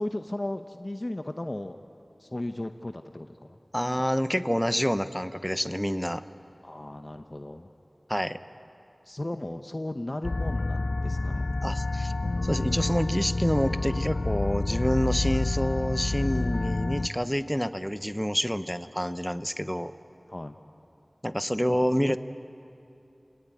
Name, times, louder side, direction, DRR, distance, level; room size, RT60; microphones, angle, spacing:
voice 1, 0.0-1.8 2.2-3.4 6.6-7.7 9.1-11.5 20.3-20.6 21.5-22.2, left 1 dB, 40° left, 6 dB, 0.8 m, -35 dB
voice 2, 3.7-6.2 8.1-8.4 11.6-12.1 12.4-19.9 21.2-22.2, equal, ahead, 11 dB, 0.9 m, -28 dB
sound 1, 10.2-17.1, left 2 dB, 70° left, 0.5 m, -28 dB
28.5 x 18.5 x 9.3 m, 2.7 s
wide cardioid pair, 50°, 0 cm